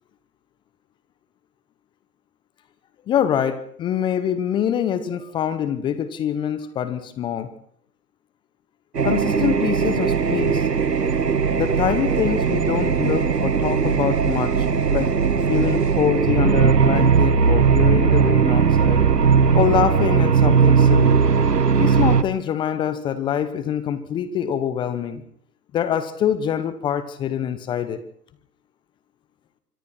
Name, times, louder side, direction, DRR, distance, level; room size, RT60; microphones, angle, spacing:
voice 1, 3.1-7.5 9.0-10.7 11.6-15.1 15.5-19.0 19.5-21.2 21.8-25.2 25.7-28.0, left 9 dB, 10° left, 13 dB, 1.0 m, -24 dB
sound 1, 8.9-22.2, right 6 dB, 80° right, 1.6 m, -18 dB
25.5 x 24.0 x 4.4 m, 0.65 s
figure-of-eight pair, 135°, 48 cm